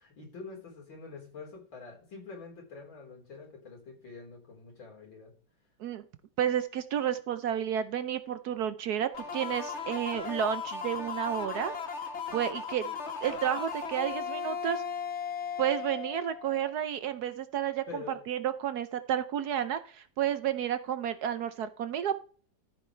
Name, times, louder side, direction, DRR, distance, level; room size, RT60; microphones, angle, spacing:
voice 1, 0.0-5.3 17.9-18.2, left 4 dB, 90° left, -1 dB, 5.0 m, -46 dB
voice 2, 6.4-11.7 12.3-12.9 13.2-14.8 15.6-22.2, right 9 dB, 65° right, 11 dB, 1.1 m, -31 dB
sound 1, 9.1-16.7, left 6 dB, 40° left, 1.4 m, -37 dB
14.0 x 7.5 x 3.3 m, 0.42 s
omnidirectional pair, 2.1 m